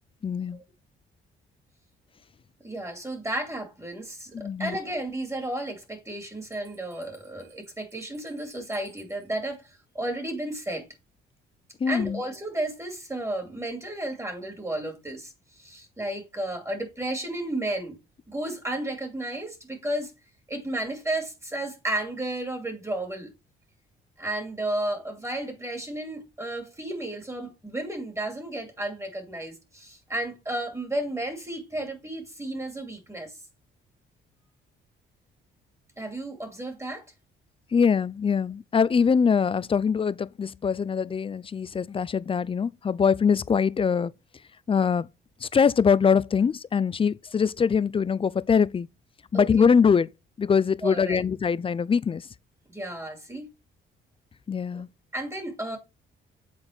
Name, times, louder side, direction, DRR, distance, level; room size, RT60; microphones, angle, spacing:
voice 1, 0.2-0.6 4.3-4.8 11.8-12.2 37.7-44.1 44.7-45.1 45.4-48.9 49.3-50.1 50.4-52.2 54.5-54.9, left 6 dB, 25° left, 0.4 m, -23 dB
voice 2, 2.6-10.9 11.9-18.0 18.3-20.1 20.5-23.3 24.2-33.3 36.0-37.1 49.3-49.7 50.8-51.2 52.7-53.5 54.7-54.8 55.1-55.8, right 1 dB, 15° right, 2.3 m, -33 dB
Bell, 6.2-9.3, right 6 dB, 70° right, 4.5 m, -59 dB
7.8 x 4.2 x 4.3 m
cardioid pair, 90°, 20 cm